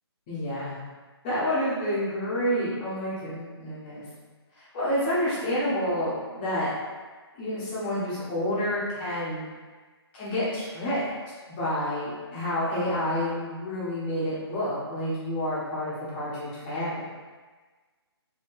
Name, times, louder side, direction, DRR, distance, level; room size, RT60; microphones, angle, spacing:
voice 1, 0.3-0.8 1.2-4.0 4.6-6.7 7.4-9.4 10.1-11.1 11.5-17.0, equal, 20° left, -9 dB, 0.9 m, -29 dB
2.9 x 2.8 x 3.0 m, 1.4 s
hypercardioid pair, 165°, 14 cm